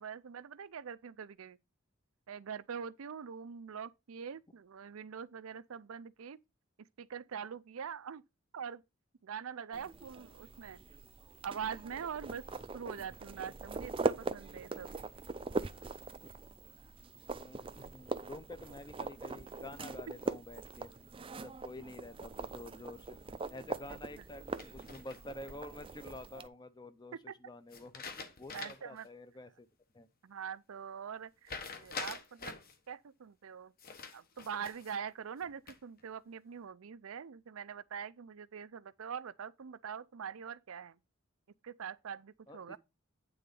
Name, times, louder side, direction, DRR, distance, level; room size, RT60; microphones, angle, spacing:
voice 1, 0.0-1.6 2.3-6.4 6.8-8.2 8.5-8.8 9.2-10.8 11.4-12.4 12.7-14.9 23.9-24.0 27.3-27.4 28.5-29.1 30.2-32.6 32.9-33.7 34.1-41.0 41.6-42.8, right 7 dB, 75° right, 0.5 m, -43 dB
sound 1, 9.7-26.5, right 3 dB, 25° right, 0.5 m, -41 dB
voice 2, 17.4-20.9 21.4-23.2 23.5-28.0 28.4-29.7 29.9-30.1 42.5-42.8, left 2 dB, 20° left, 0.7 m, -49 dB
sound 2, 24.6-25.5 27.7-29.0 29.4-29.5 31.5-32.8 33.8-35.0 35.4-36.0, left 4 dB, 45° left, 1.3 m, -45 dB
9.2 x 3.9 x 5.3 m
head